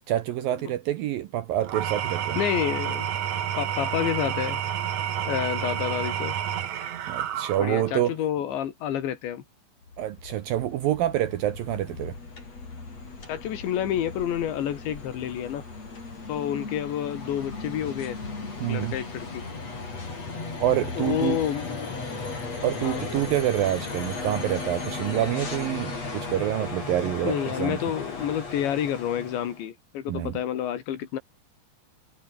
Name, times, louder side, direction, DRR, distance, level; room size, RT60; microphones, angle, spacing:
voice 1, 0.1-2.4 7.1-8.1 10.0-12.2 18.6-18.9 20.6-21.4 22.6-27.8 30.1-30.3, right 13 dB, 70° right, 2.2 m, -27 dB
Engine / Tools, 1.6-8.0, right 10 dB, 55° right, 2.5 m, -30 dB
voice 2, 2.4-3.1 3.6-4.6 5.3-6.4 7.6-9.4 13.3-15.6 16.3-18.2 18.7-19.4 21.0-22.0 22.8-23.0 27.2-31.2, left 10 dB, 80° left, 4.7 m, -29 dB
sound 1, 9.8-29.6, left 3 dB, 35° left, 7.3 m, -36 dB
omnidirectional pair, 5.1 m